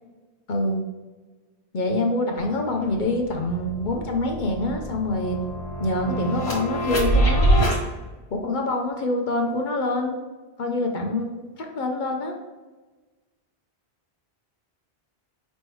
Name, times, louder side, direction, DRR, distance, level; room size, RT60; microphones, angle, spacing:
voice 1, 0.5-0.8 1.7-5.4 5.8-7.7 8.3-10.2 10.6-12.3, left 2 dB, 55° left, 2 dB, 0.7 m, -26 dB
sound 1, 2.4-2.5 2.8-7.8, right 1 dB, 70° left, 1.6 m, -25 dB
5.3 x 3.1 x 3.0 m, 1.3 s
omnidirectional pair, 1.1 m